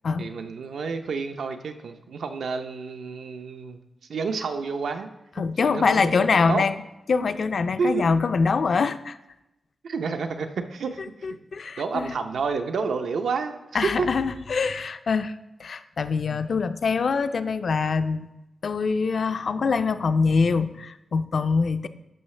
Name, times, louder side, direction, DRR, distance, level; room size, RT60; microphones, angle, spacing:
voice 1, 0.2-3.8 4.1-5.1 5.4-6.6 7.8-8.1 9.8-11.0 11.8-13.6 14.0-14.1, right 5 dB, 90° right, 6 dB, 0.6 m, -29 dB
voice 2, 5.4-6.8 7.1-9.2 11.2-12.1 13.7-18.3 18.6-21.9, left 5 dB, 50° left, 11 dB, 0.3 m, -24 dB
12.0 x 5.6 x 3.2 m, 0.93 s
wide cardioid pair, 165°, 0 cm